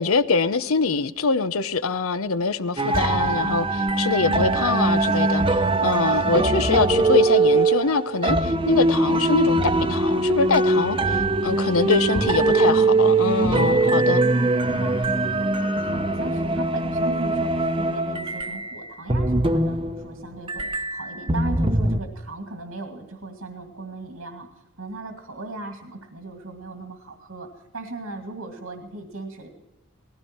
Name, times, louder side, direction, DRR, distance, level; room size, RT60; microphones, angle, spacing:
voice 1, 0.0-9.6 9.9-14.2, left 4 dB, 85° left, 0.8 m, -24 dB
sound 1, 2.8-20.2 20.5-22.0, right 2 dB, 25° right, 0.8 m, -22 dB
voice 2, 4.2-4.6 11.4-11.9 12.1-12.4 13.5-24.5 24.8-29.5, right 2 dB, 90° right, 2.2 m, -37 dB
19.0 x 15.5 x 4.5 m
head